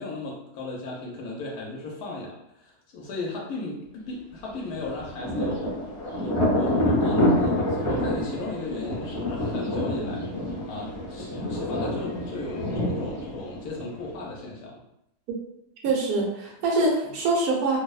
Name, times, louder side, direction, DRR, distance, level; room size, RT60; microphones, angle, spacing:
voice 1, 0.0-5.7 6.2-14.8 17.0-17.1, left 2 dB, 85° left, -3 dB, 1.1 m, -36 dB
Thunder, 4.7-14.2, left 1 dB, 25° left, 0.8 m, -27 dB
voice 2, 15.8-17.8, right 2 dB, 85° right, -2 dB, 1.2 m, -24 dB
2.9 x 2.0 x 2.3 m, 0.80 s
omnidirectional pair, 1.6 m